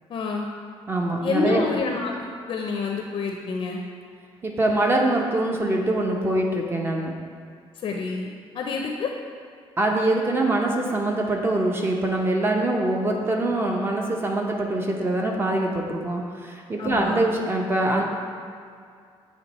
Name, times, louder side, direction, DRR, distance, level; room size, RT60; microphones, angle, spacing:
voice 1, 0.1-0.5 1.2-3.8 7.8-8.3 8.5-9.1 16.8-17.2, left 4 dB, 50° left, 1 dB, 0.5 m, -27 dB
voice 2, 0.9-1.6 4.4-7.1 9.8-18.0, right 2 dB, 20° right, 1 dB, 0.7 m, -24 dB
8.5 x 3.1 x 4.1 m, 2.3 s
cardioid pair, 140°, 10 cm